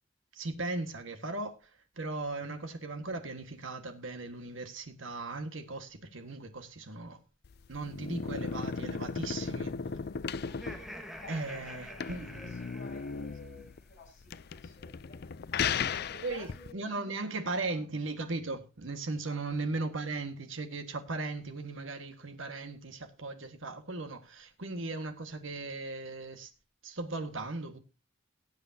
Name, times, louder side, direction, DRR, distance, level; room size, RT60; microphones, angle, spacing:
voice 1, 0.3-1.5 2.0-7.2 7.7-9.7 11.3-12.4 16.2-26.5 26.8-27.8, right 3 dB, 70° right, 1.7 m, -37 dB
sound 1, 7.4-16.7, left 6 dB, 50° left, 0.5 m, -36 dB
Laughter, 10.4-13.7, equal, ahead, 1.6 m, -47 dB
voice 2, 11.1-16.8 17.0-17.9 19.2-19.8, left 2 dB, 35° left, 7.6 m, -53 dB
19.0 x 8.2 x 2.8 m
head